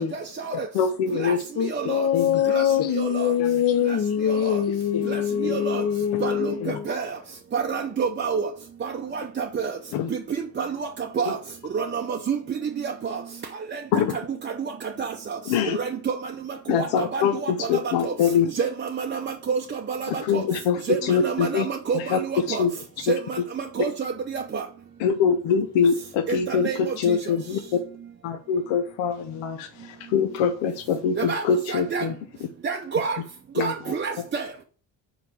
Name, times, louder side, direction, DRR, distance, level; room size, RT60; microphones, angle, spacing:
voice 1, 0.7-1.4 2.1-2.4 2.8-2.9 3.4-3.5 4.9-5.0 5.4-5.6 6.6-6.8 9.9-10.1 11.3-11.4 13.9-14.2 15.5-15.8 16.7-18.5 20.1-21.7 21.9-22.7 23.1-23.2 25.0-27.8 28.2-32.2 33.6-33.7, left 7 dB, 90° left, 0.8 m, -24 dB
voice 2, 1.6-6.9, left 9 dB, 35° left, 0.6 m, -24 dB
voice 3, 5.5-5.8 6.2-6.3 6.9-7.1 7.5-8.5 8.8-9.7 10.6-10.7 11.2-11.4 11.7-12.4 12.8-12.9 13.7-13.8 15.0-15.1 15.8-16.1 16.8-17.5 18.0-18.1 18.6-19.2 19.5-20.4 20.9-22.6 23.1-23.2 23.8-24.6 26.5-26.9 31.2-31.4 31.7-32.0 32.6-33.2 33.6-34.4, right 6 dB, 25° right, 0.6 m, -28 dB
5.1 x 4.0 x 4.6 m
cardioid pair, 115°, 43 cm